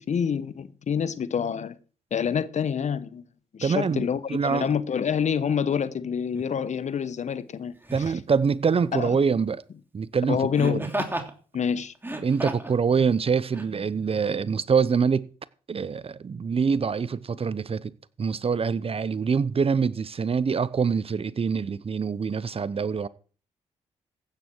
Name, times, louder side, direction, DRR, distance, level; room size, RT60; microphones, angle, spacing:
voice 1, 0.0-1.8 2.1-3.3 3.5-7.7 8.9-9.2 10.3-10.8 11.5-11.9, left 7 dB, 55° left, 1.1 m, -27 dB
voice 2, 3.6-4.7 7.9-9.6 9.9-10.9 12.2-15.3 15.7-17.9 18.2-23.1, right 6 dB, 40° right, 0.8 m, -25 dB
Laughter, 6.3-6.5 7.8-8.2 10.6-11.3 12.0-12.8 13.5-13.7, right 1 dB, 15° right, 3.0 m, -32 dB
15.5 x 9.2 x 4.6 m
supercardioid pair, 50°, 14 cm